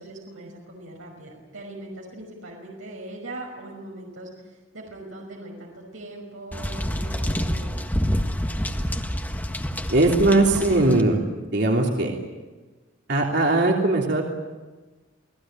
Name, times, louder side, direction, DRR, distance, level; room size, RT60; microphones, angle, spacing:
voice 1, 0.0-7.8, right 1 dB, 80° right, -1 dB, 5.8 m, -40 dB
sound 1, 6.5-11.0, equal, 10° left, 1.6 m, -27 dB
voice 2, 9.9-11.2 11.5-12.1 13.1-14.2, right 2 dB, 60° right, 0 dB, 3.2 m, -19 dB
28.5 x 19.0 x 9.1 m, 1.3 s
head